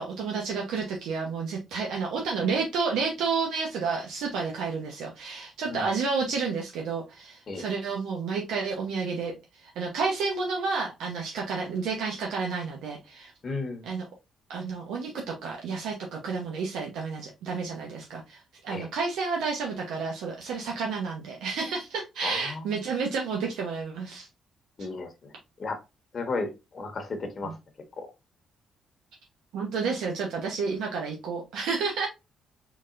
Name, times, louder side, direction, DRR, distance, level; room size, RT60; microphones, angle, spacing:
voice 1, 0.0-9.3 9.6-13.3 13.9-14.0 14.5-24.3 27.4-27.5 29.5-32.1, right 4 dB, 90° right, 1.0 m, -30 dB
voice 2, 13.4-13.9 18.7-18.9 22.2-22.6 24.8-25.3 25.6-25.8 26.1-27.6 28.0-28.1, left 3 dB, 45° left, 1.2 m, -34 dB
4.0 x 4.0 x 2.5 m
cardioid pair, 90°, 0 cm